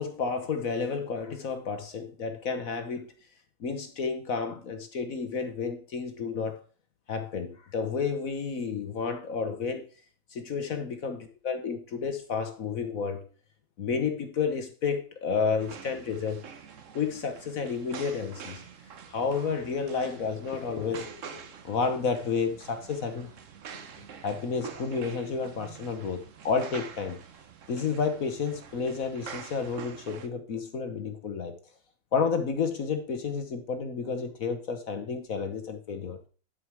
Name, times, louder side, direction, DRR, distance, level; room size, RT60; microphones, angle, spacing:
voice 1, 0.0-3.1 3.6-6.6 7.1-9.8 10.3-11.2 11.4-13.2 13.8-16.4 16.9-18.6 19.1-23.3 24.2-27.2 27.7-31.6 32.1-36.2, left 5 dB, 50° left, 8 dB, 1.3 m, -31 dB
sound 1, 15.6-30.3, right 7 dB, 50° right, 1.0 m, -46 dB
11.5 x 5.1 x 4.7 m, 0.39 s
omnidirectional pair, 2.1 m